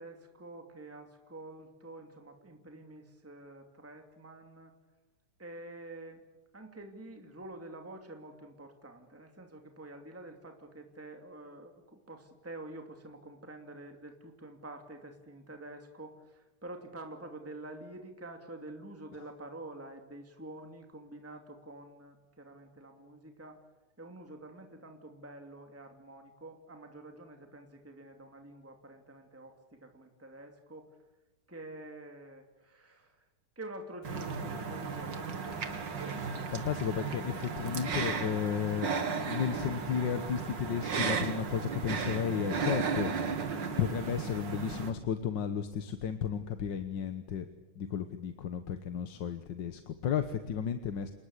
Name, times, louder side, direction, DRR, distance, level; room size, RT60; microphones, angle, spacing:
voice 1, 0.0-4.7 5.4-6.2 6.5-23.6 24.0-30.9 31.5-33.3 33.6-35.5, right 2 dB, 5° right, 4 dB, 2.5 m, -48 dB
sound 1, 34.0-44.9, right 5 dB, 55° right, 2.6 m, -35 dB
voice 2, 36.5-38.9 39.3-43.3 43.8-47.5 47.8-51.1, left 7 dB, 60° left, 9 dB, 1.8 m, -33 dB
29.5 x 19.5 x 8.3 m, 1.1 s
omnidirectional pair, 2.4 m